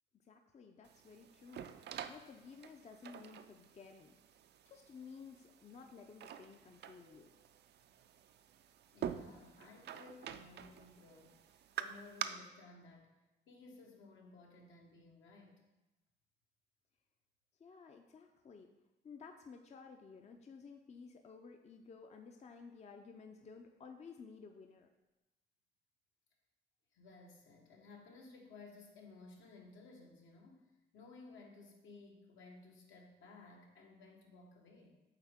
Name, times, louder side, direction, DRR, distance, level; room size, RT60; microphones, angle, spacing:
voice 1, 0.2-1.7 2.1-4.2 4.6-7.3 17.6-18.7 19.0-24.9, left 5 dB, 35° left, 4 dB, 0.5 m, -54 dB
sound 1, 0.8-12.2, right 9 dB, 60° right, 0.4 m, -48 dB
voice 2, 8.9-13.2 13.5-15.6 26.9-35.0, left 3 dB, 75° left, 0 dB, 1.3 m, -57 dB
8.1 x 4.0 x 3.6 m, 1.0 s
cardioid pair, 90°, 20 cm